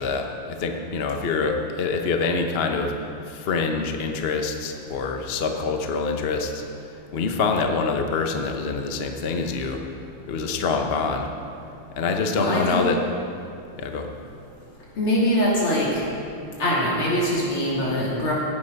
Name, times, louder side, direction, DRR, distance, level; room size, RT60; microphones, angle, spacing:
voice 1, 0.0-2.9 3.3-6.6 7.1-9.8 10.3-11.3 12.0-13.0 13.8-14.1, left 4 dB, 50° left, 4 dB, 0.7 m, -25 dB
voice 2, 12.3-12.8 15.0-16.0 16.6-18.3, equal, 80° left, -6 dB, 3.9 m, -23 dB
16.0 x 9.3 x 5.3 m, 2.6 s
omnidirectional pair, 2.4 m